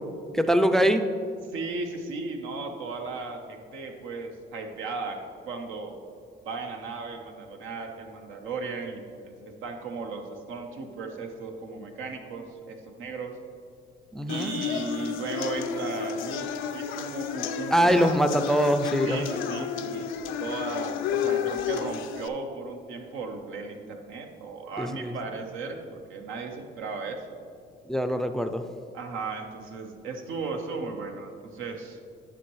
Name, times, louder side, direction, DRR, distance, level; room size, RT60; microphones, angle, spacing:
voice 1, 0.3-1.1 14.1-14.5 17.7-19.3 24.8-25.1 27.9-28.6, equal, ahead, 8 dB, 0.4 m, -23 dB
voice 2, 1.5-6.0 6.4-13.4 14.3-18.2 19.0-20.1 20.4-27.3 28.9-32.0, right 3 dB, 90° right, 4 dB, 0.8 m, -36 dB
sound 1, 14.3-22.3, left 8 dB, 90° left, 0.5 m, -31 dB
10.0 x 6.3 x 3.1 m, 2.3 s
cardioid pair, 90°, 20 cm